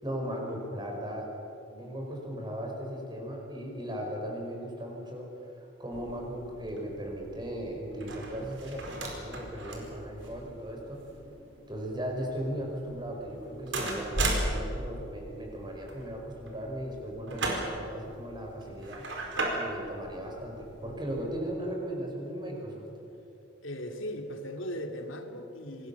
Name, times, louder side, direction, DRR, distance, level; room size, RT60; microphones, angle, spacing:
voice 1, 0.0-1.3 1.7-11.0 11.7-19.0 19.5-22.9, equal, 20° right, 1 dB, 4.9 m, -37 dB
sound 1, 5.9-21.4, right 2 dB, 65° right, 4.6 m, -37 dB
voice 2, 23.6-25.9, equal, 80° left, 5 dB, 2.4 m, -38 dB
27.0 x 20.5 x 7.1 m, 3.0 s
head